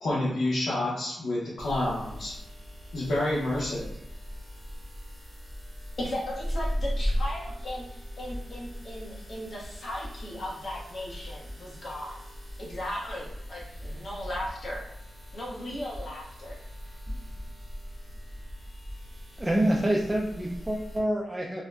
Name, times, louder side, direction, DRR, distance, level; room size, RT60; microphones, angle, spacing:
voice 1, 0.0-2.3 2.9-3.9, left 1 dB, 85° left, -9 dB, 0.8 m, -28 dB
sound 1, 1.6-21.0, equal, 5° left, 1.0 m, -38 dB
voice 2, 6.0-12.2 12.6-14.8 15.3-16.6, left 1 dB, 50° left, -4 dB, 0.9 m, -37 dB
voice 3, 19.4-21.6, right 1 dB, 10° right, -2 dB, 0.3 m, -26 dB
2.6 x 2.1 x 3.3 m, 0.81 s
wide cardioid pair, 140°, 0 cm